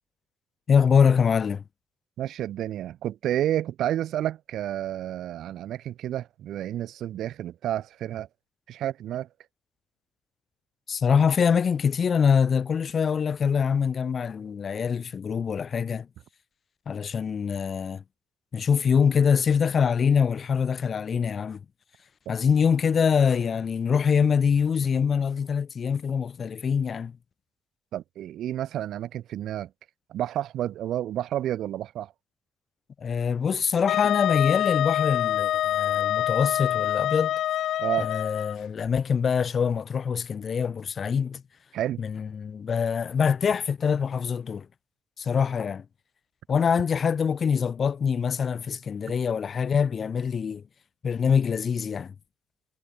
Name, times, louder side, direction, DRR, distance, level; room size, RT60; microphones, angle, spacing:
voice 1, 0.7-1.6 10.9-16.1 16.9-18.0 18.5-21.6 22.3-27.2 33.0-37.4 38.0-41.4 42.0-44.7 45.2-45.8 46.5-50.6 51.0-52.1, left 6 dB, 45° left, 2.2 m, -24 dB
voice 2, 2.2-8.3 8.7-9.3 27.9-29.7 30.1-32.1 37.8-38.1 41.7-42.0, right 12 dB, 75° right, 0.7 m, -30 dB
Wind instrument woodwind instrument, 33.9-38.6, left 12 dB, 75° left, 0.9 m, -26 dB
cardioid pair, 90°, 0 cm